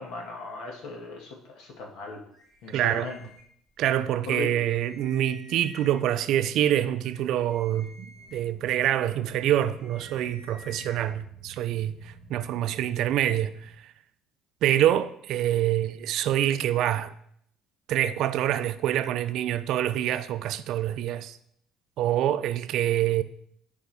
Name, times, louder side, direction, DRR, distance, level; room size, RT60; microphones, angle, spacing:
voice 1, 0.0-2.2 2.6-3.2 4.3-4.6, left 3 dB, 70° left, 1.8 m, -37 dB
sound 1, 2.3-3.9 4.3-4.4 4.6-6.2 6.7-11.1, left 2 dB, 20° left, 2.4 m, -52 dB
voice 2, 2.7-3.1 3.8-13.9 14.6-17.1 17.9-21.4 22.0-23.2, right 12 dB, 60° right, 0.4 m, -26 dB
sound 2, 8.1-13.7, right 3 dB, 85° left, 1.9 m, -51 dB
10.5 x 4.8 x 3.5 m
cardioid pair, 160°, 0 cm